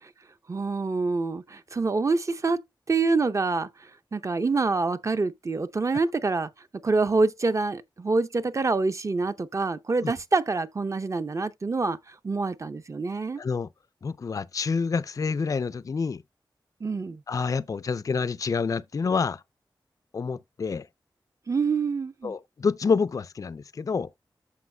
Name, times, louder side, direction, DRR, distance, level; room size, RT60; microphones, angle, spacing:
voice 1, 0.5-2.6 2.9-13.4 16.8-17.2 21.5-22.3, right 3 dB, 40° right, 0.6 m, -26 dB
voice 2, 13.4-13.7 14.0-16.2 17.3-19.4 20.1-20.9 22.2-24.1, left 5 dB, 45° left, 0.3 m, -27 dB
14.0 x 4.8 x 2.2 m
wide cardioid pair, 105°, 8 cm